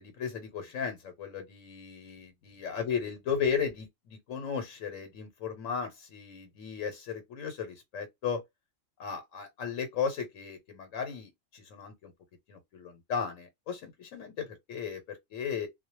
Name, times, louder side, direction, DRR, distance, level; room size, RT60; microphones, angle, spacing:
voice 1, 0.0-8.4 9.0-12.1 12.5-15.7, left 6 dB, 75° left, 1.1 m, -35 dB
2.3 x 2.1 x 2.8 m
omnidirectional pair, 1.3 m